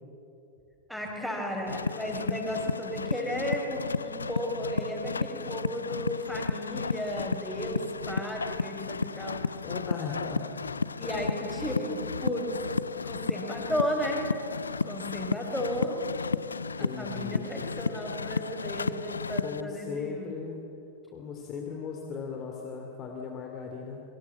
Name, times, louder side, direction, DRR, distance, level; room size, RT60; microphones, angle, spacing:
voice 1, 0.9-9.4 11.0-12.5 13.0-14.2 14.8-16.0 16.8-20.3, equal, 5° left, 0 dB, 6.2 m, -34 dB
sound 1, 1.7-19.6, left 5 dB, 75° left, 0.5 m, -33 dB
voice 2, 9.6-10.5 11.0-11.1 16.8-17.5 19.4-20.6 21.1-24.0, left 5 dB, 30° left, 2 dB, 2.8 m, -37 dB
28.0 x 23.5 x 7.7 m, 3.0 s
figure-of-eight pair, 90°, 0 cm